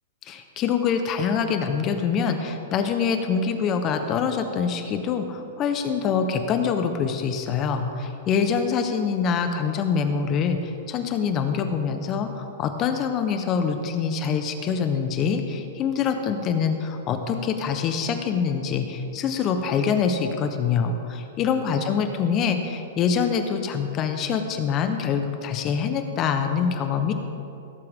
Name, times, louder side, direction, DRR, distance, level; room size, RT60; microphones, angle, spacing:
voice 1, 0.3-27.1, left 6 dB, 30° left, 7 dB, 1.1 m, -25 dB
17.5 x 7.7 x 3.8 m, 2.7 s
hypercardioid pair, 130°, 0 cm